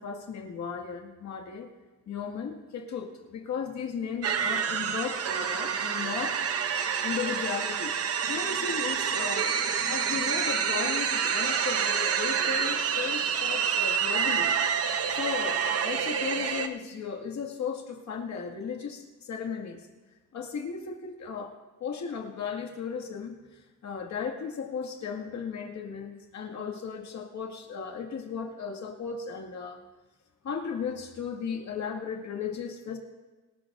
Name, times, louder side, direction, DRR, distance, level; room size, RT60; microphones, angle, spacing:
voice 1, 0.0-1.7 2.1-6.4 7.0-7.9 8.3-9.5 9.8-19.9 20.3-21.5 21.8-29.8 30.4-33.0, left 6 dB, 65° left, 2 dB, 2.0 m, -36 dB
sound 1, 4.2-16.7, right 7 dB, 50° right, 0.7 m, -28 dB
27.0 x 12.0 x 2.6 m, 1.2 s
wide cardioid pair, 160°, 31 cm